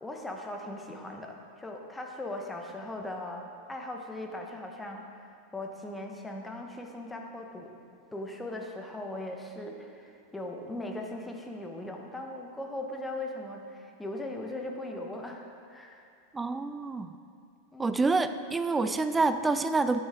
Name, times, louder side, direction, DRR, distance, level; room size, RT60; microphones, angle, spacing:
voice 1, 0.0-7.7 8.1-16.0 17.7-17.9, left 1 dB, 10° left, 2 dB, 1.1 m, -39 dB
voice 2, 16.3-17.1 17.8-20.0, right 3 dB, 10° right, 10 dB, 0.4 m, -27 dB
11.5 x 8.9 x 3.7 m, 2.4 s
figure-of-eight pair, 90°, 0 cm